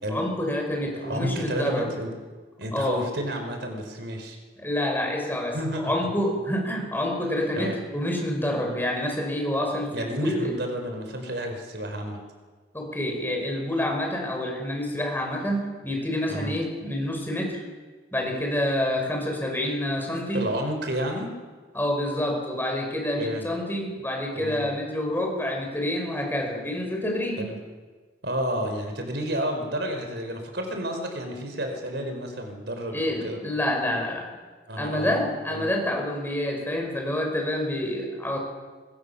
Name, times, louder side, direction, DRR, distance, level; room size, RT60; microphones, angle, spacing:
voice 1, 0.1-1.9 2.7-3.0 4.6-5.6 5.8-10.6 12.7-17.6 18.1-20.5 21.7-27.5 32.9-34.3 34.8-38.4, left 1 dB, 10° left, 1 dB, 5.8 m, -28 dB
voice 2, 1.0-2.1 2.6-4.4 5.5-6.1 7.5-7.7 9.9-12.2 16.3-16.5 20.3-21.3 23.2-23.4 24.3-24.7 27.4-27.6 28.2-33.4 34.7-35.2 35.5-35.7, equal, 65° right, 4 dB, 5.0 m, -31 dB
26.0 x 23.0 x 7.2 m, 1.4 s
head